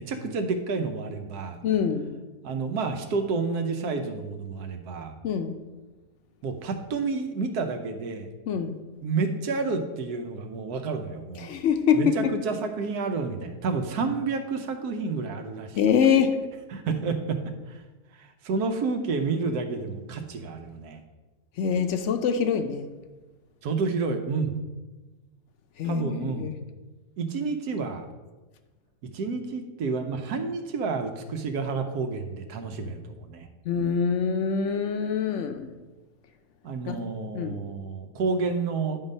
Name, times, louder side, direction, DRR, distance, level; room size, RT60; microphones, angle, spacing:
voice 1, 0.0-1.6 2.4-5.1 6.4-8.3 9.0-11.5 11.9-15.8 16.7-17.8 18.2-21.0 23.6-24.6 25.8-26.5 27.2-28.1 29.0-33.5 36.6-39.0, right 4 dB, 90° right, 7 dB, 1.3 m, -30 dB
voice 2, 1.6-2.1 5.2-5.6 8.5-8.8 11.4-12.4 15.8-16.4 21.6-22.9 25.8-26.6 33.6-35.8 36.9-37.1 37.3-37.7, left 7 dB, 60° left, 7 dB, 0.8 m, -25 dB
9.6 x 3.8 x 5.3 m, 1.2 s
omnidirectional pair, 1.6 m